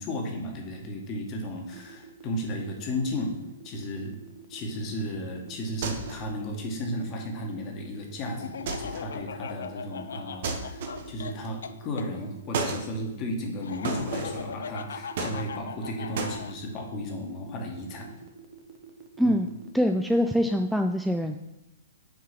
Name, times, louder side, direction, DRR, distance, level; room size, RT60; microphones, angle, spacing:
voice 1, 0.0-3.3 3.6-4.2 4.5-18.1 19.2-19.4, equal, 30° left, 2 dB, 1.7 m, -34 dB
sound 1, 1.7-20.2, right 6 dB, 30° right, 1.1 m, -48 dB
sound 2, 5.8-6.3 8.7-9.1 10.4-11.2 12.5-12.9 13.8-14.5 15.2-15.8 16.2-16.4, right 4 dB, 55° right, 1.1 m, -33 dB
Laughter, 8.4-12.1 13.6-16.5, left 6 dB, 65° left, 0.5 m, -39 dB
voice 2, 19.2-19.5 19.7-21.4, equal, ahead, 4 dB, 0.4 m, -24 dB
6.4 x 4.7 x 5.9 m, 0.92 s
figure-of-eight pair, 115°, 0 cm